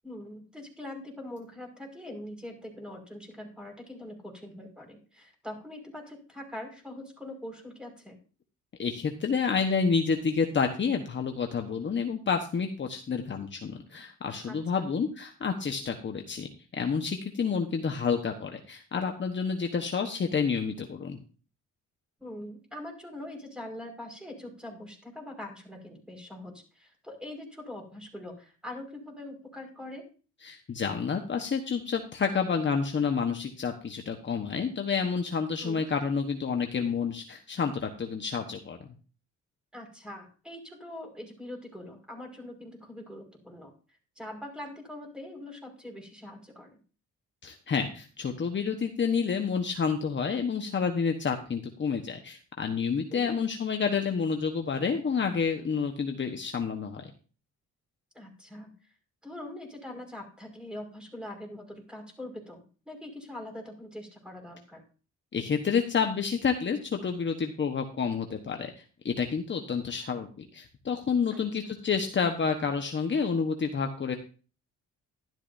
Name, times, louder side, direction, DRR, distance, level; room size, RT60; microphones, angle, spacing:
voice 1, 0.0-8.2 14.4-14.6 22.2-30.0 35.6-35.9 39.7-43.7 44.2-46.8 53.1-53.4 58.1-58.9 59.2-64.8 71.3-71.4, left 1 dB, 5° right, 2 dB, 5.3 m, -43 dB
voice 2, 8.8-16.5 16.7-21.2 30.4-38.9 47.4-57.1 65.3-68.7 69.0-74.2, left 5 dB, 40° left, 4 dB, 1.3 m, -29 dB
12.5 x 12.0 x 2.7 m, 0.37 s
cardioid pair, 90°, 30 cm